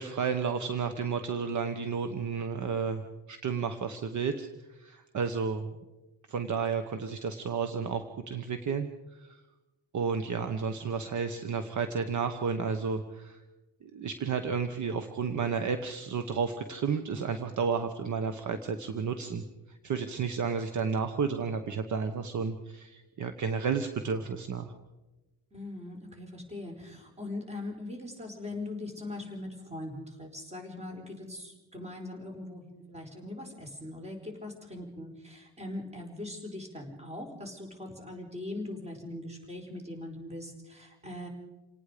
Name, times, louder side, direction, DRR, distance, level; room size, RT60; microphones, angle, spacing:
voice 1, 0.0-5.7 6.3-8.9 9.2-9.4 9.9-13.4 13.8-24.7, right 5 dB, 50° right, 8 dB, 1.2 m, -32 dB
voice 2, 25.5-41.3, left 2 dB, 15° right, 3 dB, 4.5 m, -41 dB
28.0 x 18.5 x 5.1 m, 1.1 s
cardioid pair, 165°, 38 cm